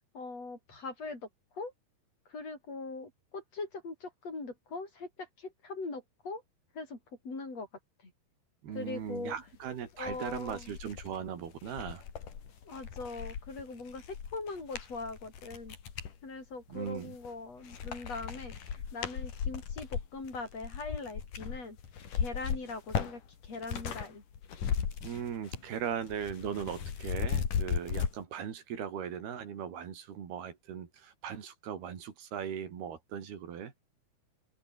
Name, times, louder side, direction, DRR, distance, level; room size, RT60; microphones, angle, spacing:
voice 1, 0.1-1.3 1.5-1.7 2.3-6.4 6.7-7.0 7.2-7.7 8.0-8.1 8.7-9.3 10.0-10.7 12.6-15.7 16.2-21.8 22.1-24.2, left 3 dB, 40° left, 8.5 m, -41 dB
voice 2, 8.6-12.0 16.7-17.2 25.0-33.7, right 8 dB, 85° right, 5.1 m, -39 dB
sound 1, 9.5-9.6 10.0-16.1 16.7-17.3 17.6-24.1 24.3-25.7 26.0-28.1, left 7 dB, 60° left, 4.4 m, -37 dB
open air
omnidirectional pair, 4.4 m